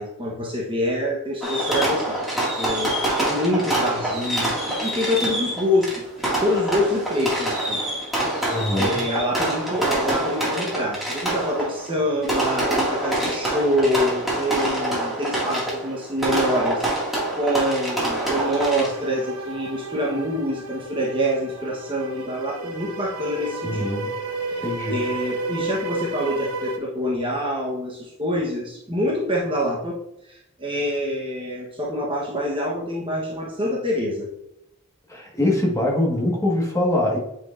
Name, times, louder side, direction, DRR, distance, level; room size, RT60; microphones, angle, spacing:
voice 1, 0.0-6.0 6.4-7.8 8.8-16.8 17.4-23.9 24.5-24.6 24.9-30.0 30.3-34.3, equal, 25° right, -3 dB, 1.0 m, -26 dB
Fireworks, 1.4-19.2, right 1 dB, ahead, 2.0 m, -25 dB
voice 2, 8.5-9.0 23.6-24.1 24.6-25.1 35.1-37.2, left 1 dB, 15° left, -2 dB, 1.5 m, -23 dB
sound 1, 18.1-26.8, right 3 dB, 85° right, 0.9 m, -32 dB
9.0 x 4.5 x 2.5 m, 0.81 s
head